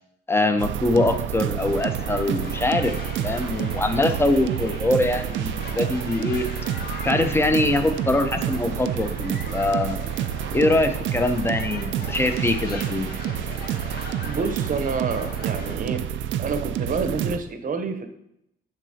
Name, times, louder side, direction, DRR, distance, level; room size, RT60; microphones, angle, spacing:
voice 1, 0.3-2.9 3.2-6.5 7.0-10.0 10.5-13.1, left 2 dB, 10° left, 8 dB, 0.6 m, -23 dB
sound 1, 0.6-17.4, right 10 dB, 75° right, 0.4 m, -29 dB
sound 2, 1.6-15.8, left 5 dB, 50° left, 0.7 m, -40 dB
voice 2, 14.2-16.0 16.4-18.1, right 4 dB, 45° right, 8 dB, 0.8 m, -28 dB
6.7 x 6.0 x 2.8 m, 0.77 s
cardioid pair, 90°, 20 cm